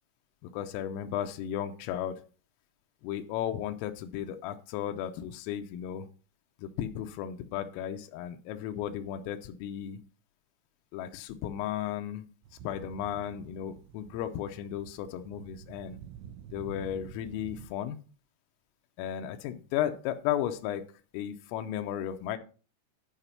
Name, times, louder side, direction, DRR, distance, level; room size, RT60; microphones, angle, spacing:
voice 1, 0.4-2.2 3.0-6.1 6.6-10.0 10.9-12.3 12.6-16.0 16.5-18.0 19.0-20.8 21.1-22.4, left 10 dB, 90° left, 6 dB, 3.4 m, -34 dB
sound 1, 12.4-17.7, right 9 dB, 85° right, 2.5 m, -49 dB
11.0 x 5.0 x 5.6 m, 0.37 s
omnidirectional pair, 5.9 m